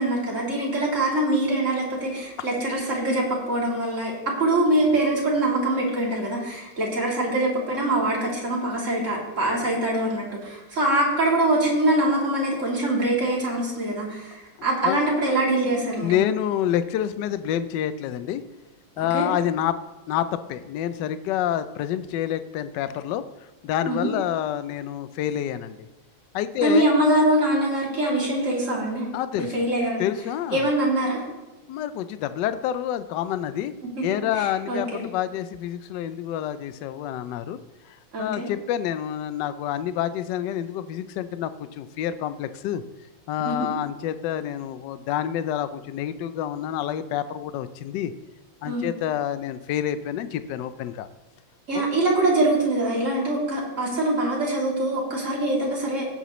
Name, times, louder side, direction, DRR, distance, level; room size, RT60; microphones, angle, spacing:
voice 1, 0.0-16.2 19.0-19.2 23.9-24.1 26.6-29.1 29.4-30.1 30.5-31.2 34.0-34.1 34.4-35.0 38.1-38.5 43.4-43.7 48.7-48.9 51.7-56.1, right 1 dB, 35° right, -4 dB, 3.0 m, -23 dB
voice 2, 15.6-18.4 19.0-19.8 20.1-23.2 23.6-25.9 26.3-26.9 29.1-29.5 30.0-30.6 31.7-33.7 34.0-37.6 37.8-42.8 43.3-48.1 48.6-51.1 51.7-51.9, left 10 dB, 70° left, 13 dB, 1.1 m, -28 dB
16.5 x 8.1 x 3.1 m, 1.1 s
omnidirectional pair, 2.2 m